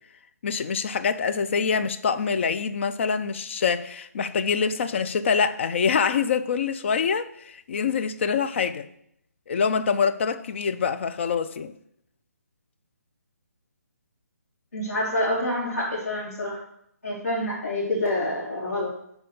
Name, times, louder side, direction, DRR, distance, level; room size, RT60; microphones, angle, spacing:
voice 1, 0.4-8.9 9.5-11.7, left 6 dB, 45° left, 0.5 m, -25 dB
voice 2, 14.7-16.6 17.0-18.9, left 1 dB, 65° left, 3.2 m, -27 dB
6.8 x 4.5 x 6.5 m
figure-of-eight pair, 155°, 9 cm